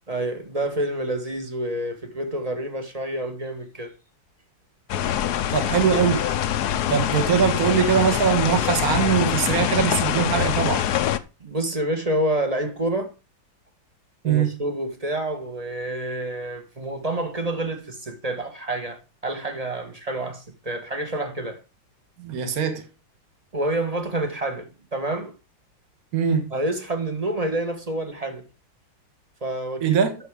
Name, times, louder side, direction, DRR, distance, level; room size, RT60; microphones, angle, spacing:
voice 1, 0.1-3.9 11.4-13.1 14.2-21.6 23.5-25.3 26.5-28.4 29.4-30.0, right 1 dB, 20° right, 1.1 m, -28 dB
sound 1, 4.9-11.2, left 11 dB, 65° left, 1.1 m, -24 dB
voice 2, 5.5-6.3 6.9-10.8 14.2-14.5 22.2-22.9 26.1-26.5 29.8-30.2, right 7 dB, 45° right, 1.9 m, -22 dB
9.8 x 6.7 x 4.8 m
omnidirectional pair, 2.3 m